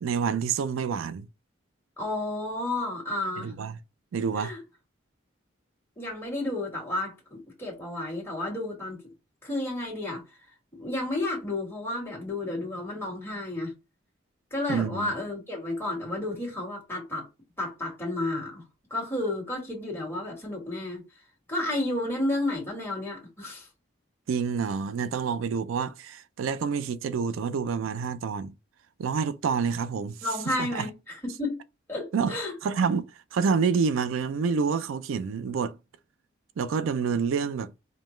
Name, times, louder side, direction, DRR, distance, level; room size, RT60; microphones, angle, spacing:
voice 1, 0.0-1.3 3.4-3.8 4.1-4.5 14.7-15.1 24.3-28.5 29.0-30.2 30.5-30.9 32.1-32.3 32.6-33.1 33.3-35.8 36.6-37.7, right 6 dB, 90° right, 0.4 m, -28 dB
voice 2, 2.0-3.5 4.4-4.6 6.0-9.0 9.4-10.2 10.7-13.7 14.5-17.2 17.6-18.6 18.9-21.0 21.5-23.7 30.2-31.6 31.9-32.5, left 2 dB, 10° left, 1.7 m, -31 dB
5.0 x 2.2 x 3.1 m
head